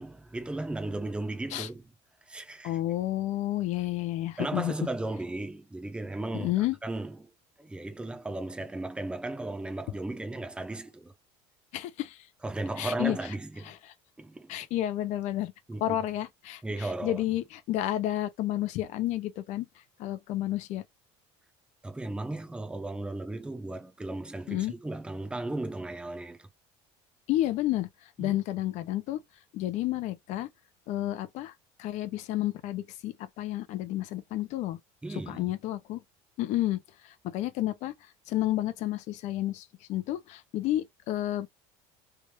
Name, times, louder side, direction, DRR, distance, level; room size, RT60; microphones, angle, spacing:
voice 1, 0.0-1.8 2.3-2.8 4.4-7.3 7.6-11.1 12.4-13.7 14.2-14.5 15.7-16.0 16.6-17.2 21.8-26.5 28.2-28.4 35.0-35.5, right 2 dB, 5° right, 0.8 m, -35 dB
voice 2, 2.6-4.7 6.3-6.8 11.7-12.2 12.8-13.2 13.7-13.8 14.5-15.5 15.8-19.7 20.0-20.8 24.5-24.7 27.3-27.9 28.2-29.2 29.5-30.5 30.9-31.5 31.8-34.8 35.3-36.0 36.4-36.8 37.3-37.9 38.3-41.5, left 14 dB, 60° left, 0.8 m, -30 dB
3.5 x 2.5 x 3.0 m
cardioid pair, 130°, 13 cm